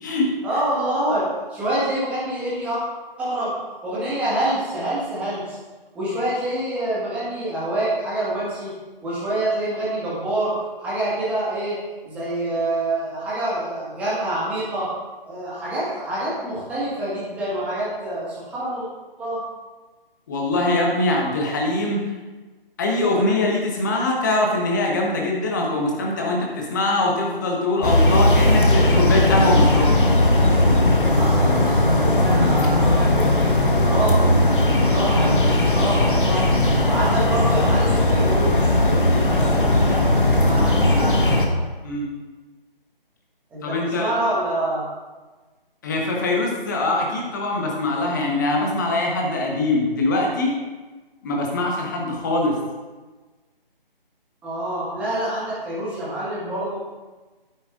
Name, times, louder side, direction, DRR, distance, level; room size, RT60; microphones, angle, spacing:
voice 1, 0.4-2.8 3.2-3.5 3.8-5.6 5.9-8.7 9.0-10.5 10.8-14.9 15.2-18.8 19.2-19.4 31.1-34.2 34.8-36.5 36.8-40.2 40.4-41.2 43.5-44.8 54.4-56.8, right 1 dB, 5° right, -9 dB, 1.6 m, -26 dB
voice 2, 20.3-22.0 22.8-29.9 41.8-42.1 43.6-44.1 45.8-50.6 51.2-52.6, left 2 dB, 20° left, -1 dB, 1.2 m, -22 dB
sound 1, 27.8-41.5, left 1 dB, 60° left, 1.5 m, -18 dB
11.0 x 9.7 x 2.6 m, 1.3 s
figure-of-eight pair, 150°, 29 cm